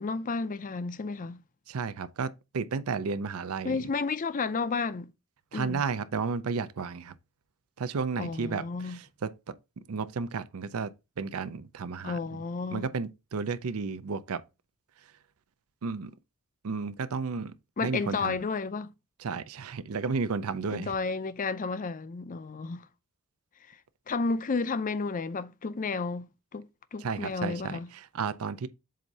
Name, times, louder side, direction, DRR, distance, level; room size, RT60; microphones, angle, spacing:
voice 1, 0.0-1.4 3.6-5.1 5.5-5.8 8.2-9.0 12.0-12.9 17.8-18.9 20.7-22.9 23.7-23.8 24.1-27.9, left 4 dB, 35° left, 0.5 m, -32 dB
voice 2, 1.7-3.8 5.5-7.1 7.8-9.3 9.9-10.9 11.2-12.2 12.7-14.4 15.8-16.1 16.6-17.5 17.8-18.4 19.2-20.9 27.0-27.8 28.1-28.7, right 5 dB, 75° right, 0.5 m, -32 dB
7.6 x 2.7 x 5.3 m
head